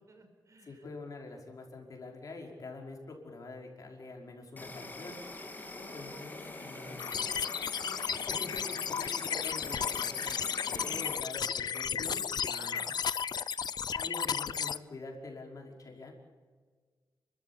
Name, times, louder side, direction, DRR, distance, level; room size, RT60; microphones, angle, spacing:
voice 1, 0.1-0.8 6.1-7.5 10.1-11.0 12.5-12.9, right 2 dB, 40° right, 5 dB, 4.8 m, -54 dB
voice 2, 0.6-5.5 5.7-7.2 8.0-10.2 10.8-12.8 14.0-16.1, left 3 dB, 50° left, 1 dB, 5.4 m, -46 dB
Insect, 4.6-11.2, left 2 dB, 25° left, 2.8 m, -45 dB
sound 1, 7.0-14.8, left 7 dB, 65° left, 0.6 m, -34 dB
30.0 x 14.0 x 8.7 m, 1.5 s
wide cardioid pair, 135°, 8 cm